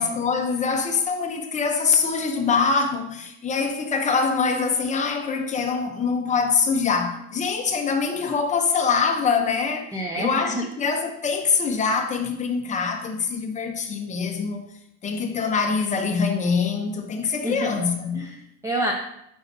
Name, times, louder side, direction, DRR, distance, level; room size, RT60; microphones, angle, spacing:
voice 1, 0.0-9.9 10.2-14.6 15.0-18.2, left 5 dB, 20° left, 0.7 m, -24 dB
voice 2, 9.9-10.7 17.4-17.8 18.1-18.9, equal, 10° right, 0.3 m, -28 dB
7.9 x 5.2 x 2.7 m
cardioid pair, 150°, 35 cm